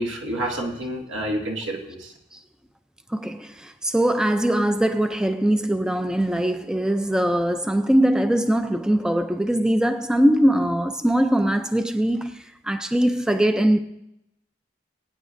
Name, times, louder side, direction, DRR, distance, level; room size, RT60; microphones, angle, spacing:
voice 1, 0.0-2.1, right 1 dB, 80° right, 2.2 m, -28 dB
voice 2, 3.1-13.8, right 1 dB, 5° right, 0.4 m, -21 dB
21.5 x 9.3 x 2.6 m
head